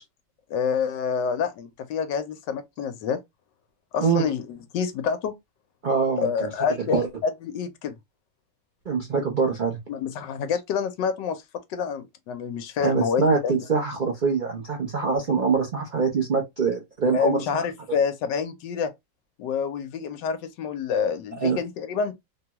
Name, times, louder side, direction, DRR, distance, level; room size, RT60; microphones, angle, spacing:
voice 1, 0.5-3.2 3.9-5.3 6.2-7.9 9.9-11.4 11.7-13.6 17.1-18.9 19.4-22.1, left 6 dB, 75° left, 1.3 m, -27 dB
voice 2, 5.8-6.5 6.9-7.1 8.9-9.8 12.8-17.6 21.4-21.6, right 5 dB, 80° right, 0.4 m, -24 dB
3.3 x 2.3 x 2.9 m
omnidirectional pair, 2.0 m